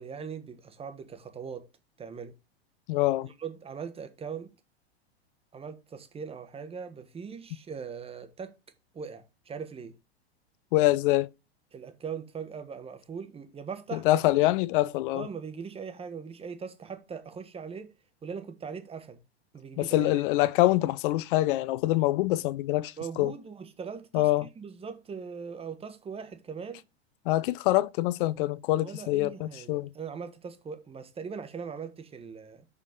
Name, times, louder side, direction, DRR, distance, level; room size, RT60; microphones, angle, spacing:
voice 1, 0.0-1.7 2.0-2.3 3.2-4.5 5.5-8.5 8.9-10.0 11.7-14.2 15.1-17.9 18.2-19.2 19.5-20.1 23.0-26.8 28.8-32.6, right 6 dB, 20° right, 1.3 m, -40 dB
voice 2, 2.9-3.3 10.7-11.3 13.9-15.3 19.8-23.3 24.1-24.5 27.3-29.9, left 17 dB, 55° left, 0.7 m, -25 dB
6.8 x 5.0 x 5.3 m
hypercardioid pair, 110°, 32 cm